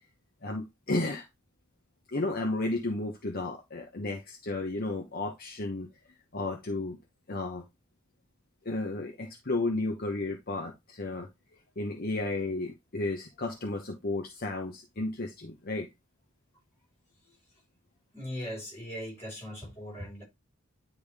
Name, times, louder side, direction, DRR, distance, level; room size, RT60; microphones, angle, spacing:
voice 1, 0.4-1.3 2.1-5.9 6.3-7.0 7.3-7.6 8.6-11.3 11.8-15.9, left 2 dB, 45° left, 1.1 m, -33 dB
voice 2, 18.1-20.2, equal, 10° left, 5.1 m, -39 dB
10.0 x 3.5 x 3.5 m
head